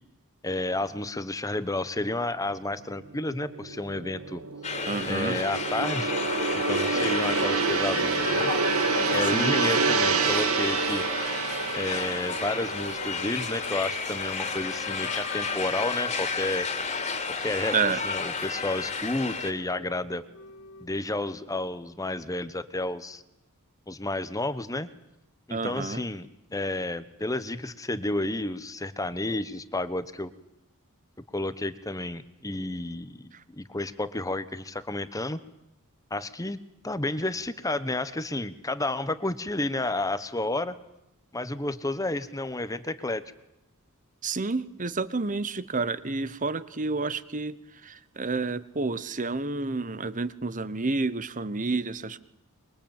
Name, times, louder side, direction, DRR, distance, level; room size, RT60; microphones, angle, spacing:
voice 1, 0.4-4.4 5.1-6.1 6.5-8.5 9.1-11.0 11.7-16.7 17.4-17.7 18.0-20.2 20.8-23.2 23.9-24.9 25.5-30.3 31.3-35.4 36.1-40.7 41.3-43.2, left 2 dB, 15° left, 13 dB, 1.1 m, -31 dB
Gong, 2.8-15.3 15.6-15.9, right 4 dB, 70° right, 2.1 m, -28 dB
sound 1, 4.6-19.5, left 4 dB, 30° left, 3.1 m, -32 dB
voice 2, 4.9-5.4 9.2-9.6 17.7-18.0 25.5-26.0 44.2-47.6 47.8-52.2, right 3 dB, 35° right, 16 dB, 1.1 m, -29 dB
Wind instrument woodwind instrument, 12.0-16.5 16.8-21.3, left 5 dB, 90° left, 3.0 m, -46 dB
25.5 x 23.5 x 9.0 m, 0.87 s
head